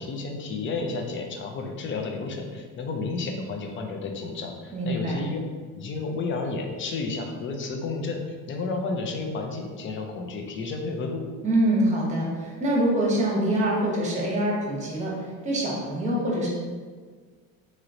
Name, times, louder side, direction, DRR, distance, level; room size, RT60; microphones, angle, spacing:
voice 1, 0.0-5.4 5.7-11.3, left 3 dB, 35° left, 3 dB, 0.4 m, -31 dB
voice 2, 4.7-5.2 11.4-15.1 15.4-16.5, right 1 dB, 20° right, -4 dB, 0.8 m, -25 dB
2.9 x 2.9 x 2.5 m, 1.5 s
cardioid pair, 120°, 37 cm